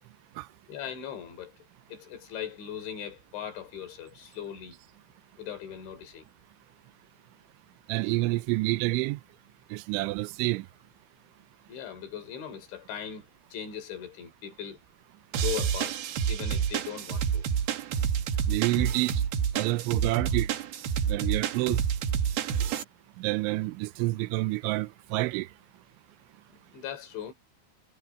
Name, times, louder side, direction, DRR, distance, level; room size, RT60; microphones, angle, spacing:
voice 1, 0.7-1.5 1.9-4.8 5.4-6.3 11.7-14.8 15.3-16.0 16.3-17.5 26.5-27.3, left 9 dB, 70° left, 5.8 m, -39 dB
voice 2, 7.9-9.2 9.7-10.7 18.5-19.2 19.5-20.5 21.1-21.8 23.2-25.5, right 20 dB, 85° right, 3.0 m, -28 dB
sound 1, 15.3-22.8, right 8 dB, 65° right, 3.1 m, -28 dB
omnidirectional pair, 5.5 m